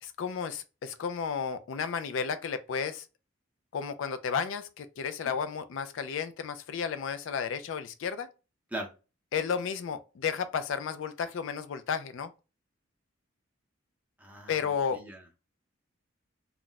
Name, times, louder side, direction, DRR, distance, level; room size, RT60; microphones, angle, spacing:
voice 1, 0.0-3.0 3.7-8.3 9.3-12.3 14.5-15.0, left 6 dB, 70° left, 0.4 m, -33 dB
voice 2, 14.2-15.2, right 1 dB, 5° right, 0.7 m, -40 dB
2.4 x 2.1 x 3.8 m
head